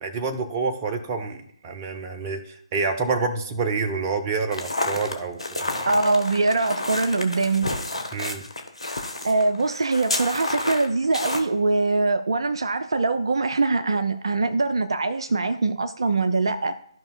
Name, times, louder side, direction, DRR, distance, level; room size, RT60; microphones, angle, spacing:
voice 1, 0.0-6.0 8.1-8.4, right 4 dB, 20° right, 0.7 m, -28 dB
sound 1, 4.5-11.4, left 2 dB, 70° left, 1.2 m, -30 dB
voice 2, 5.9-7.7 9.2-16.8, right 3 dB, 55° right, 0.5 m, -23 dB
14.0 x 5.2 x 2.3 m
figure-of-eight pair, 145°, 3 cm